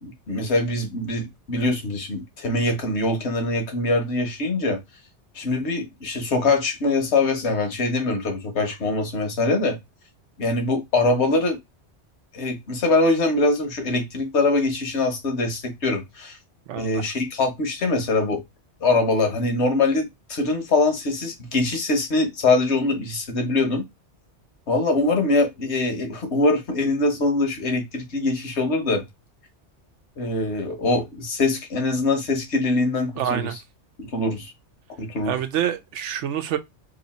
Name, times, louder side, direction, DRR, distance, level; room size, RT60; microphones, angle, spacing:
voice 1, 0.0-4.8 5.3-9.8 10.4-11.6 12.3-16.4 16.7-18.4 18.8-23.8 24.7-29.0 30.2-33.5 34.0-34.5 35.0-35.4, left 2 dB, 70° left, 1.3 m, -23 dB
voice 2, 16.7-17.0 33.2-33.6 35.2-36.6, right 10 dB, 80° right, 0.9 m, -27 dB
3.2 x 2.7 x 4.1 m
omnidirectional pair, 1.2 m